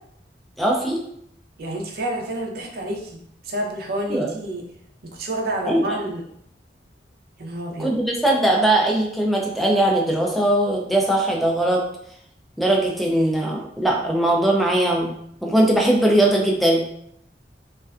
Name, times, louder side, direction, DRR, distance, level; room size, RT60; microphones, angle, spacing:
voice 1, 0.6-1.0 4.1-4.3 5.7-5.8 7.8-11.8 12.6-15.1 15.4-16.8, right 1 dB, ahead, -1 dB, 0.4 m, -20 dB
voice 2, 1.6-3.2 3.4-4.6 5.1-6.2 7.4-7.9, right 1 dB, 60° right, 0 dB, 0.5 m, -29 dB
2.5 x 2.2 x 2.3 m, 0.72 s
head